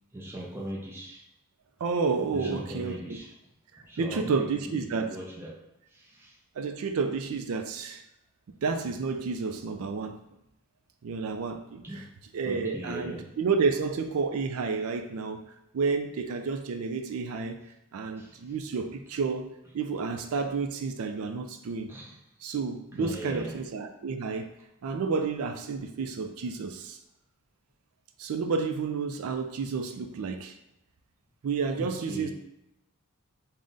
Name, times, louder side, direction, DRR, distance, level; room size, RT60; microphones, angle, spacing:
voice 1, 0.1-1.2 2.3-3.4 3.8-5.6 5.9-6.4 11.8-12.1 12.4-13.3 18.2-18.4 21.9-22.2 23.0-23.5 31.8-32.3, right 1 dB, 10° right, -3 dB, 0.5 m, -39 dB
voice 2, 1.8-3.0 3.7-5.2 6.6-8.0 8.6-10.2 11.0-11.8 12.3-15.4 15.7-17.6 17.9-21.9 22.4-24.5 24.8-27.0 28.2-30.6 31.4-32.3, right 4 dB, 75° right, 6 dB, 0.4 m, -30 dB
3.6 x 2.1 x 3.8 m, 0.87 s
head